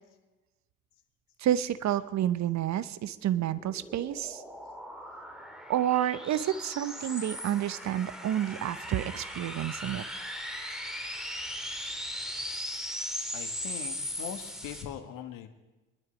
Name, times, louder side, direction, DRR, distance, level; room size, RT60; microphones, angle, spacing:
voice 1, 1.4-4.4 5.7-10.1, right 11 dB, 50° right, 16 dB, 0.8 m, -29 dB
sound 1, 3.0-14.8, equal, ahead, 2.9 m, -39 dB
voice 2, 13.3-15.5, left 9 dB, 65° left, 8 dB, 1.5 m, -41 dB
23.0 x 11.5 x 5.1 m, 1.1 s
hypercardioid pair, 45°, 36 cm